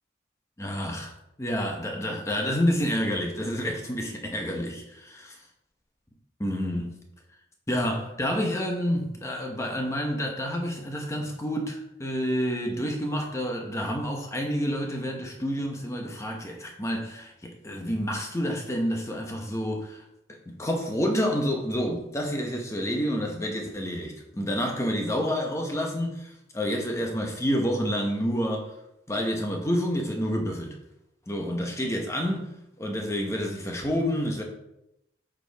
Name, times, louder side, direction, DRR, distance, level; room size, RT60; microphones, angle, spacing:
voice 1, 0.6-1.1 1.4-5.4 6.4-7.0 7.7-20.0 20.3-28.7 29.1-30.8 31.3-32.5 32.8-34.4, equal, 15° left, 0.9 m, -29 dB
7.7 x 4.6 x 3.4 m
head